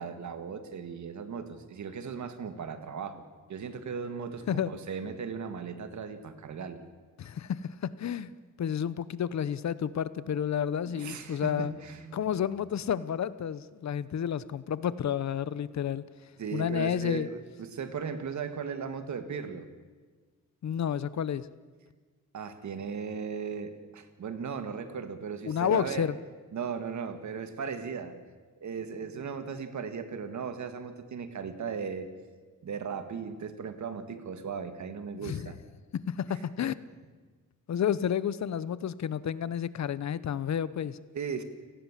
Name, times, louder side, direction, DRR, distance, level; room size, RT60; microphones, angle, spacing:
voice 1, 0.0-3.2 3.5-6.8 10.9-12.2 16.4-19.7 22.3-26.1 26.5-28.2 28.6-32.1 32.6-35.6 41.1-41.4, right 6 dB, 65° right, 9 dB, 2.1 m, -37 dB
voice 2, 7.2-8.3 8.6-11.7 12.1-16.0 16.5-17.3 20.6-21.5 25.5-26.2 35.1-35.4 35.9-36.7 37.7-41.0, left 9 dB, 60° left, 17 dB, 0.9 m, -30 dB
30.0 x 18.5 x 7.5 m, 1.4 s
wide cardioid pair, 130°, 32 cm